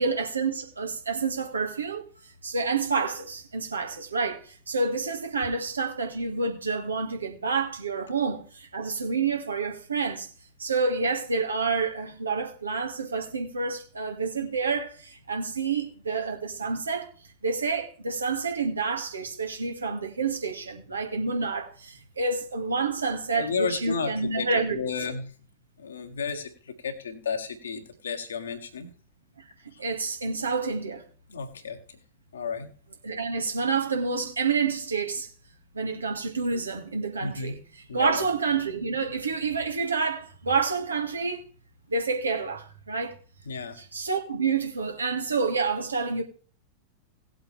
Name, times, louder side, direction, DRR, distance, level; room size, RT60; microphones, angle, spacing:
voice 1, 0.0-10.3 10.6-17.1 17.4-24.8 29.8-31.0 33.0-35.3 35.7-37.5 37.9-41.5 41.9-43.1 43.9-46.2, right 4 dB, 75° right, 2.1 m, -28 dB
voice 2, 23.3-25.3 25.8-28.9 29.7-29.8 31.3-32.0 32.3-32.7 37.2-37.6 37.9-38.3 43.4-43.8, left 5 dB, 70° left, 1.8 m, -33 dB
18.0 x 7.9 x 3.4 m
figure-of-eight pair, 90°, 0 cm